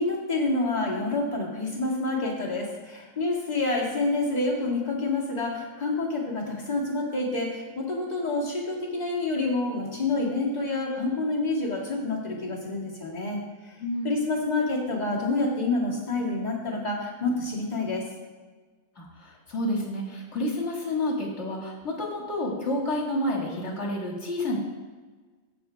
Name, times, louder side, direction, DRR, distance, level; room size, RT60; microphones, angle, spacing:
voice 1, 0.0-13.4 14.0-18.0, left 2 dB, 30° left, -4 dB, 2.2 m, -28 dB
voice 2, 13.8-14.2 19.0-24.6, left 1 dB, 55° left, -1 dB, 2.2 m, -29 dB
15.0 x 6.3 x 3.4 m, 1.3 s
omnidirectional pair, 1.4 m